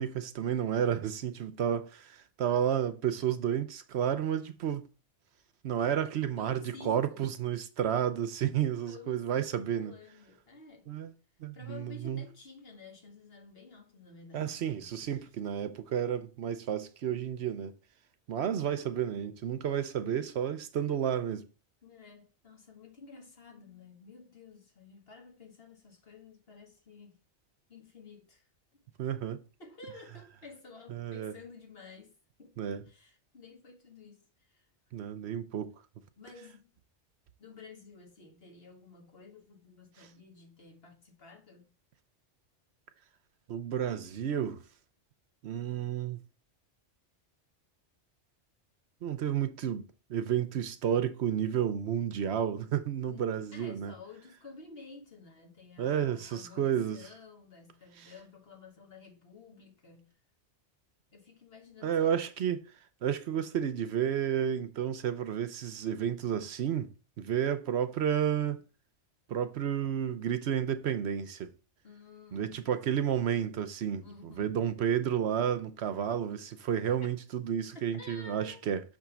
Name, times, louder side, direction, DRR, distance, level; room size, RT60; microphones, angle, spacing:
voice 1, 0.0-4.9 5.6-9.9 10.9-11.1 11.4-12.3 14.3-17.7 18.3-21.5 29.0-29.4 30.9-31.3 32.6-32.8 34.9-35.7 43.5-44.6 45.4-46.2 49.0-53.9 55.8-57.1 58.0-58.1 61.8-62.7 63.0-66.9 67.2-68.6 69.3-71.5 72.3-78.8, right 9 dB, 70° right, 0.9 m, -31 dB
voice 2, 6.4-7.3 8.9-10.9 11.5-14.9 15.2-15.3 21.8-27.2 27.7-28.8 29.6-34.7 36.2-36.7 37.4-41.7 53.1-60.1 61.1-62.1 71.8-72.6 74.0-74.7 77.7-78.7, left 4 dB, 55° left, 1.8 m, -52 dB
6.1 x 3.6 x 5.8 m
omnidirectional pair, 1.2 m